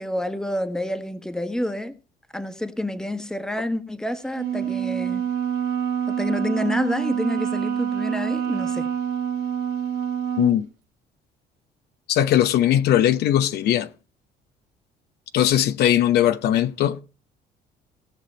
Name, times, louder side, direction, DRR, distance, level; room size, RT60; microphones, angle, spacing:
voice 1, 0.0-1.9 2.3-5.2 6.1-8.9, left 1 dB, 5° left, 1.3 m, -28 dB
Wind instrument woodwind instrument, 4.3-10.6, right 9 dB, 75° right, 1.6 m, -26 dB
voice 2, 10.4-10.7 12.1-13.9 15.3-17.0, left 11 dB, 75° left, 0.9 m, -19 dB
18.0 x 6.0 x 4.4 m
cardioid pair, 110°, 17 cm